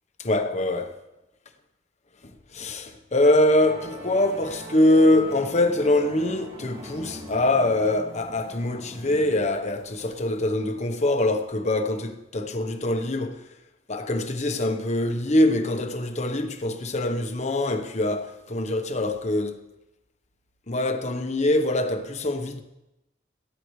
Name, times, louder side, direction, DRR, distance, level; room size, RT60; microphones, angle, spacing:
voice 1, 0.2-1.0 2.5-13.4 13.9-19.6 20.7-22.6, left 1 dB, 40° left, 1.1 m, -23 dB
Musical instrument, 3.6-10.5, equal, 35° right, 2.3 m, -42 dB
18.5 x 14.0 x 3.2 m
head